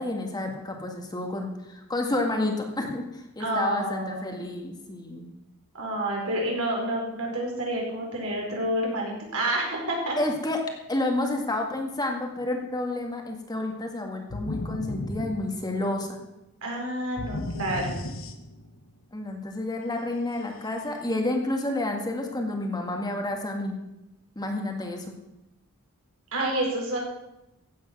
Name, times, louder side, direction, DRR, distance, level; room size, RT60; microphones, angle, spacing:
voice 1, 0.0-5.3 10.2-10.6 10.9-16.1 19.1-23.7 24.4-25.1, left 2 dB, 20° left, 2 dB, 1.7 m, -30 dB
voice 2, 3.4-4.4 5.7-10.2 16.6-18.0 26.3-27.0, right 1 dB, 70° right, -1 dB, 4.7 m, -29 dB
sound 1, 14.3-16.0 17.2-18.8, left 2 dB, 60° left, 1.1 m, -35 dB
15.5 x 8.6 x 6.0 m, 0.92 s
head